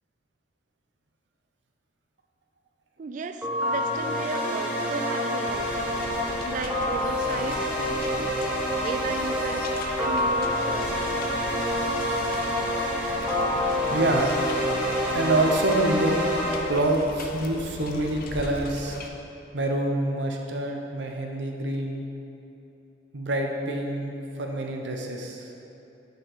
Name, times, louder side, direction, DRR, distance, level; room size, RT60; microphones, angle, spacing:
voice 1, 3.0-6.1 6.4-8.0 8.8-9.7 10.0-11.0, right 4 dB, 45° right, 8 dB, 0.3 m, -34 dB
sound 1, 3.4-16.6, equal, 10° right, 1.1 m, -27 dB
sound 2, 5.4-19.1, left 3 dB, 50° left, 0.5 m, -40 dB
voice 2, 13.9-14.3 15.1-16.3 16.7-19.0 19.5-22.0 23.1-25.5, right 1 dB, 75° right, 2 dB, 0.7 m, -26 dB
6.4 x 4.5 x 5.0 m, 2.9 s
head